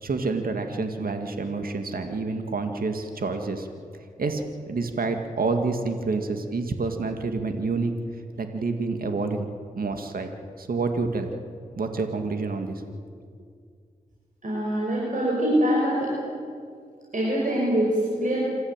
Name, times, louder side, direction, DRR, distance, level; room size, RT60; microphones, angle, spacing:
voice 1, 0.0-3.7 4.2-7.9 8.4-10.3 10.6-11.3 11.8-12.8, right 3 dB, 75° right, 6 dB, 2.1 m, -28 dB
voice 2, 14.4-16.1 17.1-18.4, equal, 55° right, -5 dB, 6.4 m, -24 dB
27.0 x 14.0 x 9.0 m, 2.2 s
cardioid pair, 55°, 15 cm